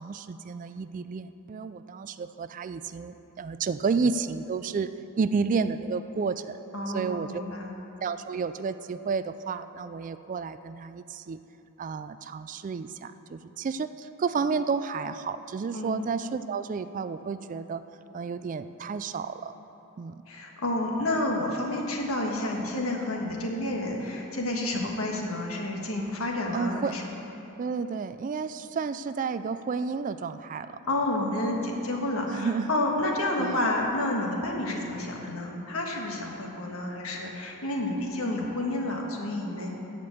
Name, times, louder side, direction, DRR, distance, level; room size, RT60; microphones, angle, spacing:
voice 1, 0.0-4.9 5.2-6.6 6.9-7.4 8.0-11.4 11.8-17.8 18.1-19.5 20.0-20.2 26.5-27.0 27.6-30.8 32.3-32.7 33.4-33.6, right 5 dB, 35° right, 12 dB, 0.3 m, -31 dB
voice 2, 6.7-7.7 15.7-16.0 20.3-27.0 30.9-39.7, left 1 dB, 65° left, 0 dB, 1.6 m, -30 dB
14.5 x 5.2 x 8.4 m, 3.0 s
head